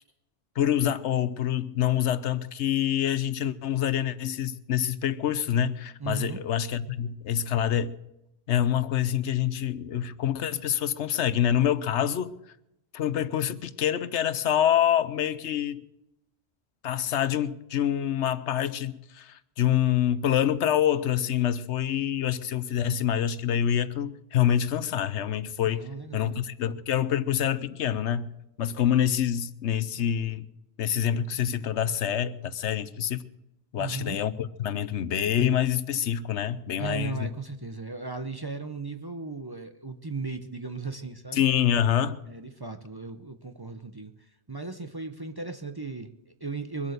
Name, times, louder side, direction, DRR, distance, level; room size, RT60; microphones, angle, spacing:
voice 1, 0.6-7.9 8.5-12.4 12.9-15.8 16.8-28.3 28.6-30.5 30.8-33.2 33.7-37.2 41.3-42.2, left 10 dB, 80° left, 1.0 m, -26 dB
voice 2, 6.0-6.4 25.6-26.4 33.8-34.2 36.8-41.4 42.3-46.9, right 4 dB, 25° right, 0.7 m, -36 dB
23.0 x 8.2 x 6.6 m
omnidirectional pair, 1.2 m